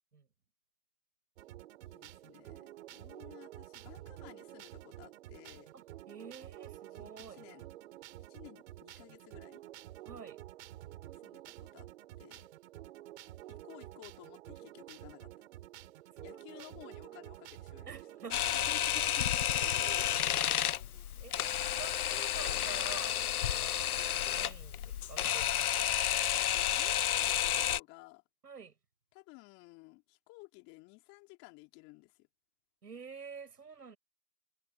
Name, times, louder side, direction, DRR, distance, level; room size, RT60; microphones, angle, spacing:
fun dancetrack, 1.4-20.3, right 14 dB, 50° right, 7.6 m, -50 dB
voice 1, 1.8-5.7 6.9-7.7 8.3-9.6 11.1-11.9 12.2-12.5 13.5-15.3 16.2-19.2 26.3-28.2 29.1-32.3, left 25 dB, 30° left, 4.1 m, -55 dB
voice 2, 5.7-7.4 10.1-10.4 15.8-15.9 16.2-16.8 17.9-18.7 19.0-19.1 19.8-23.2 23.5-26.0 28.4-28.7 32.8-34.0, right 5 dB, 90° right, 7.5 m, -49 dB
Camera, 18.3-27.8, left 11 dB, 70° left, 0.9 m, -31 dB
hypercardioid pair, 140°, 46 cm